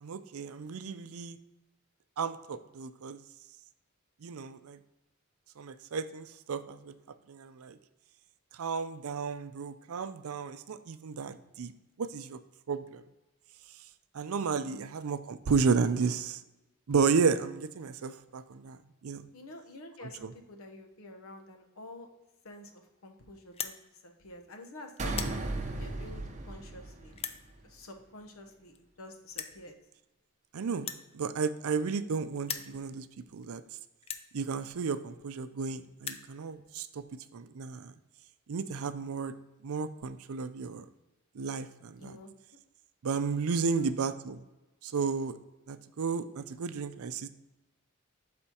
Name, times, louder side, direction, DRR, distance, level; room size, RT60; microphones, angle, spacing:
voice 1, 0.0-1.4 2.2-3.2 4.2-4.8 5.6-6.9 7.3-7.8 8.6-11.7 12.0-12.4 12.7-13.0 14.1-16.4 16.9-18.8 19.0-19.2 20.0-20.3 30.5-33.1 33.3-33.6 34.3-36.9 37.3-37.9 38.5-39.3 39.6-40.8 41.4-42.2 43.0-44.4 44.8-45.4 45.7-47.3, right 5 dB, 80° right, 12 dB, 0.5 m, -32 dB
voice 2, 19.3-22.1 22.4-23.8 24.0-25.2 25.8-27.2 27.6-29.7 42.0-42.3 43.8-43.9, left 1 dB, 75° left, 4 dB, 0.9 m, -49 dB
sound 1, 23.4-23.8 24.4-24.7 25.0-25.4 26.1-26.2 27.1-27.4 28.5-28.6 28.7-28.8 29.3-29.6 30.8-32.1 32.4-32.7 33.4-33.5 34.0-34.3 35.2-35.3 35.5-35.6 35.8-36.3, left 7 dB, 30° left, 0.4 m, -39 dB
sound 2, 25.0-27.6, right 2 dB, 35° right, 0.7 m, -36 dB
11.5 x 4.3 x 2.9 m, 1.0 s
head